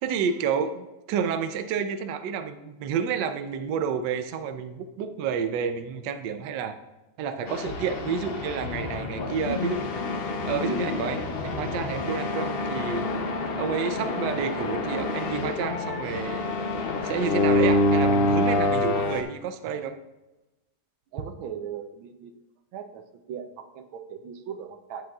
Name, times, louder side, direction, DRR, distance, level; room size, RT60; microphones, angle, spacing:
voice 1, 0.0-6.8 7.2-9.8 10.4-13.0 13.6-16.4 17.0-20.0, right 6 dB, 70° right, 8 dB, 1.2 m, -30 dB
sound 1, 7.5-19.2, left 2 dB, 90° left, 0.5 m, -27 dB
voice 2, 21.1-22.3 22.7-23.0 23.3-25.1, right 8 dB, 90° right, 7 dB, 1.5 m, -38 dB
10.0 x 7.5 x 2.3 m, 1.1 s
omnidirectional pair, 2.1 m